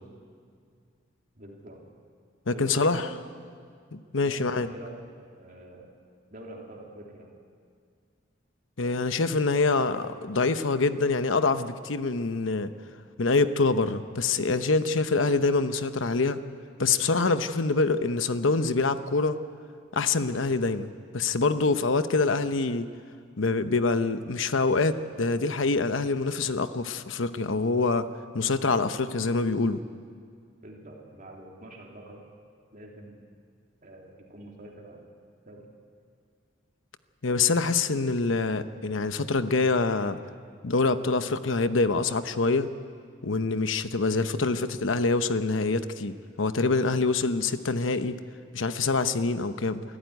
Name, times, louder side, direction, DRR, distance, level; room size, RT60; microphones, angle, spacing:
voice 1, 1.3-1.8 2.5-3.2 4.2-5.9 6.3-7.3 30.6-32.2 32.7-33.2 33.8-35.1 35.5-35.6, right 1 dB, 45° right, -1 dB, 3.3 m, -45 dB
voice 2, 2.5-3.1 3.9-4.7 8.8-12.7 13.2-16.4 16.8-19.4 19.9-20.9 21.1-22.9 23.4-28.1 28.3-29.8 37.2-40.2 40.6-42.7 43.2-48.2 48.5-49.8, left 3 dB, 85° left, 11 dB, 0.9 m, -25 dB
23.5 x 14.0 x 9.4 m, 2.2 s
head